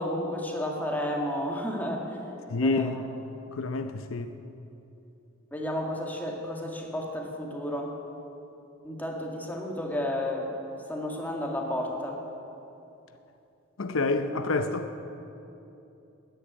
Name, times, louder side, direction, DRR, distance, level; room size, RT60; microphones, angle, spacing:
voice 1, 0.0-2.2 2.6-2.9 5.5-7.9 8.8-10.5 10.9-12.2, left 1 dB, 10° left, 1.9 m, -32 dB
voice 2, 2.5-3.0 3.6-4.3 13.8-14.9, left 3 dB, 85° left, 0.7 m, -28 dB
13.5 x 10.0 x 9.1 m
head